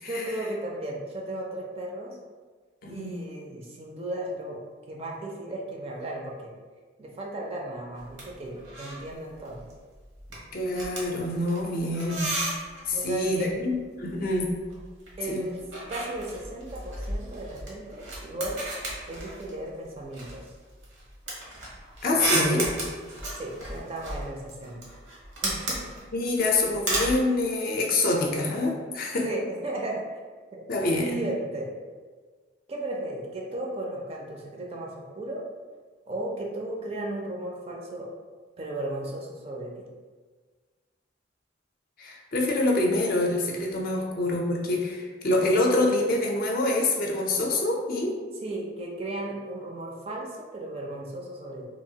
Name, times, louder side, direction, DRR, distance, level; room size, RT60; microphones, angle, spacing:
voice 1, 0.1-2.2 2.9-4.6 4.8-6.5 7.0-9.7 11.6-11.9 12.9-13.5 15.2-15.6 15.9-18.6 19.1-20.5 22.1-22.7 23.4-24.8 25.4-26.0 29.2-30.0 30.5-30.6 31.0-31.7 32.7-35.4 36.1-38.1 38.6-39.8 48.4-51.7, right 1 dB, 30° right, -2 dB, 0.4 m, -35 dB
voice 2, 2.8-3.1 10.5-12.3 12.9-14.5 15.3-15.5 22.0-22.6 26.1-29.3 30.7-31.2 42.0-48.2, left 2 dB, 50° left, 0 dB, 0.4 m, -26 dB
sound 1, 8.0-8.3 8.5-9.1 9.4-9.7 10.0-12.9 14.1-15.1 15.4-19.7 20.1-27.2, right 2 dB, 80° right, 0.9 m, -33 dB
2.9 x 2.4 x 2.7 m, 1.4 s
head